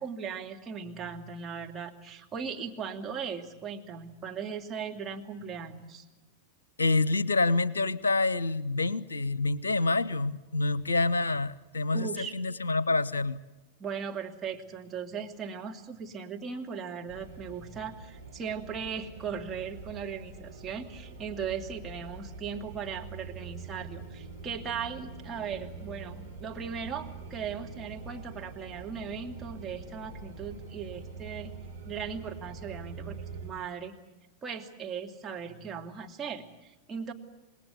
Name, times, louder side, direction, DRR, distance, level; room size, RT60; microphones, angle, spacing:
voice 1, 0.0-6.1 11.9-12.4 13.8-31.5 31.9-33.9 34.4-37.1, right 6 dB, 20° right, 2 dB, 2.4 m, -38 dB
voice 2, 6.8-13.4, left 3 dB, 75° left, 21 dB, 0.8 m, -27 dB
sound 1, 17.1-33.5, right 4 dB, 80° right, 4.2 m, -44 dB
27.5 x 20.5 x 8.2 m, 1.1 s
figure-of-eight pair, 90°, 0 cm